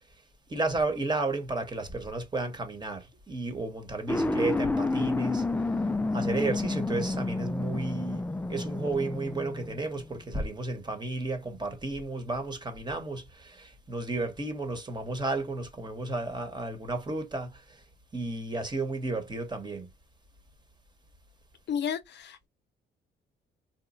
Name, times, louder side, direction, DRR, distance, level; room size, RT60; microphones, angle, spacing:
voice 1, 0.5-5.5 6.1-17.8 18.1-19.9, right 2 dB, 20° right, 1.2 m, -33 dB
sound 1, 4.1-10.1, left 2 dB, 10° left, 0.3 m, -30 dB
voice 2, 21.7-22.5, left 8 dB, 60° left, 0.7 m, -32 dB
4.1 x 2.3 x 2.4 m
cardioid pair, 90°, 20 cm